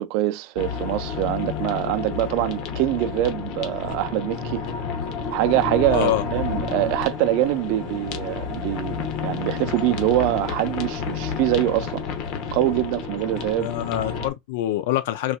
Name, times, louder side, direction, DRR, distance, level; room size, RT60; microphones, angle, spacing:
voice 1, 0.0-4.6 5.3-12.0 12.5-13.7, right 14 dB, 60° right, 0.4 m, -24 dB
sound 1, 0.6-14.3, left 6 dB, 55° left, 1.0 m, -30 dB
voice 2, 5.9-6.2 13.6-15.4, left 13 dB, 80° left, 0.5 m, -25 dB
4.0 x 2.8 x 2.3 m
supercardioid pair, 145°, 0 cm